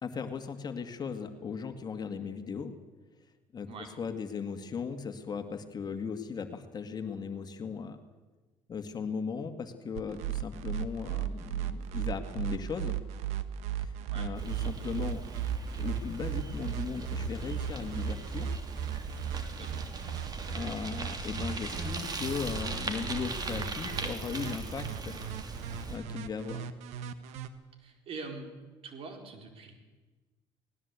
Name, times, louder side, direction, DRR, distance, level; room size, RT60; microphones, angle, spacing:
voice 1, 0.0-2.7 3.5-8.0 8.7-13.0 13.8-15.2 15.8-18.5 20.2-20.3 20.5-25.2 25.9-26.7, left 6 dB, 35° left, 7 dB, 2.0 m, -37 dB
sound 1, 10.0-27.5, right 10 dB, 75° right, 1.4 m, -36 dB
voice 2, 14.0-14.3 19.4-19.9 27.8-28.5 28.8-29.7, right 4 dB, 55° right, 4 dB, 4.4 m, -44 dB
Bicycle, 14.4-26.0, right 4 dB, 35° right, 3.0 m, -39 dB
19.0 x 18.5 x 8.4 m, 1.2 s
supercardioid pair, 85°, 11 cm